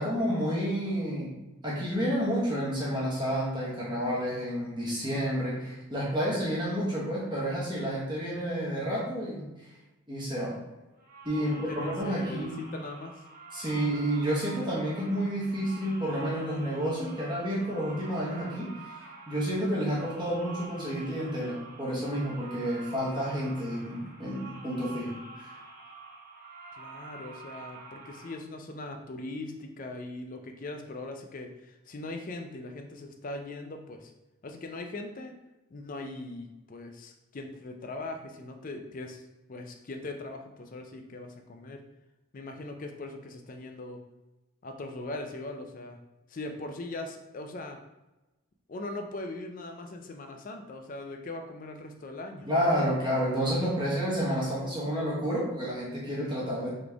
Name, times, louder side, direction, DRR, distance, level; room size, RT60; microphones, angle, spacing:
voice 1, 0.0-9.7 10.1-10.6 11.2-12.6 13.5-25.6 52.5-56.8, equal, 20° right, -7 dB, 1.0 m, -30 dB
sound 1, 11.0-28.4, right 3 dB, 40° right, 0.8 m, -47 dB
voice 2, 11.4-13.2 26.8-34.1 34.4-35.3 35.7-41.8 42.3-44.0 44.6-46.0 46.3-47.8 48.7-52.5, left 2 dB, 40° left, 5 dB, 0.4 m, -40 dB
4.0 x 3.1 x 3.4 m, 1.1 s
head